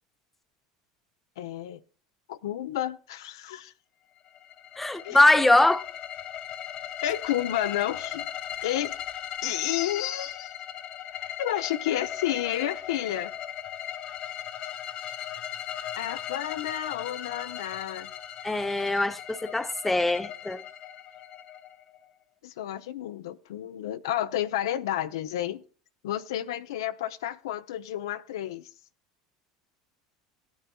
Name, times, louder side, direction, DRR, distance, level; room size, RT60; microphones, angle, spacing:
voice 1, 1.4-1.8 2.3-3.7 5.0-5.2 7.0-8.3 8.6-8.9 9.4-10.6 11.4-13.3 16.0-18.1 22.4-25.6 26.0-28.7, left 12 dB, 70° left, 0.6 m, -31 dB
sound 1, 4.3-22.1, left 10 dB, 45° left, 1.1 m, -38 dB
voice 2, 4.8-5.8 18.4-20.6, left 2 dB, 10° left, 0.8 m, -22 dB
18.0 x 9.3 x 2.3 m
hypercardioid pair, 80°, 2 cm